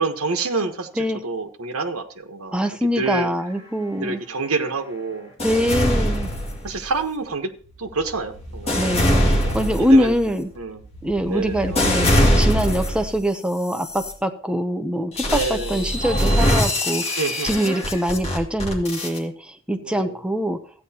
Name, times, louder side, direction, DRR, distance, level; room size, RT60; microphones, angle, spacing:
voice 1, 0.0-2.6 2.8-3.3 4.0-5.8 6.6-7.5 7.8-8.8 9.4-10.1 10.6-10.8 11.3-12.1 15.3-15.9 17.1-17.5 19.8-20.2, right 3 dB, 80° right, 5 dB, 1.2 m, -28 dB
voice 2, 2.5-4.2 5.4-6.3 8.7-10.5 11.0-17.2 17.4-20.6, equal, 5° right, 6 dB, 0.6 m, -23 dB
sound 1, 5.4-7.0 7.6-13.1 13.7-14.1 15.2-19.2, equal, 30° left, 2.1 m, -22 dB
14.5 x 9.2 x 2.9 m, 0.43 s
head